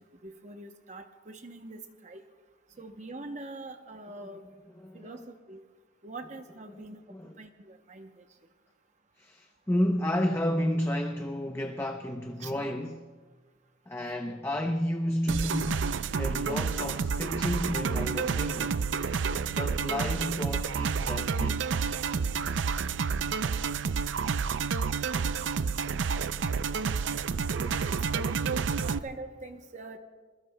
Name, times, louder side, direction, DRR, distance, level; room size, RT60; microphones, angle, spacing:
voice 1, 0.0-2.2 2.8-4.4 4.9-5.6 6.0-7.0 7.4-8.3 12.4-12.5 27.5-30.0, right 2 dB, 40° right, 0.8 m, -44 dB
voice 2, 4.8-5.2 6.7-6.8 7.1-7.4 9.2-13.1 13.9-18.8 19.5-21.6, left 1 dB, 15° left, 0.6 m, -31 dB
sound 1, 15.3-29.0, right 5 dB, 80° right, 0.4 m, -29 dB
28.0 x 21.0 x 2.2 m
head